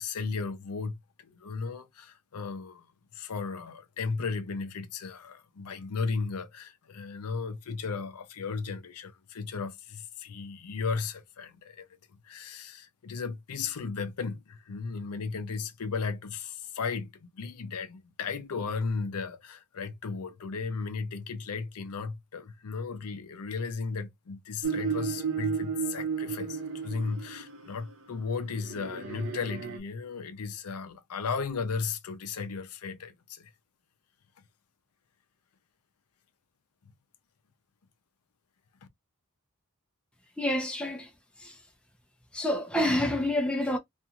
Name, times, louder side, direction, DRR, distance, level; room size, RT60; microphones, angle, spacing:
voice 1, 0.0-2.9 3.1-33.5, left 4 dB, 80° left, 0.5 m, -35 dB
sound 1, 24.6-27.6 28.6-29.8, right 6 dB, 60° right, 0.7 m, -33 dB
voice 2, 40.4-41.1 41.4-41.6 42.3-43.8, left 1 dB, 5° left, 0.5 m, -28 dB
2.5 x 2.3 x 2.7 m
head